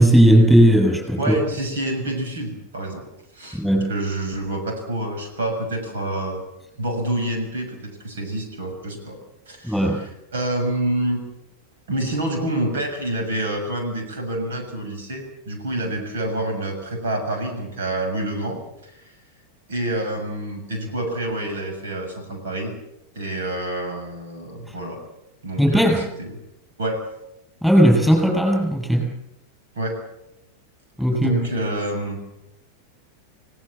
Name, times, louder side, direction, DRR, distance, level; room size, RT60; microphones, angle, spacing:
voice 1, 0.0-1.3 3.5-3.9 9.6-10.0 24.7-24.8 25.6-26.0 27.6-29.1 31.0-31.4, equal, ahead, 2 dB, 7.5 m, -16 dB
voice 2, 1.2-3.0 3.3-6.4 6.8-9.2 9.5-11.2 11.9-19.1 19.7-22.7 23.1-25.0 25.4-26.3 26.8-27.0 29.7-30.0 31.1-32.3, right 1 dB, 65° right, 5 dB, 6.7 m, -27 dB
30.0 x 18.5 x 7.3 m, 0.86 s
figure-of-eight pair, 90°, 0 cm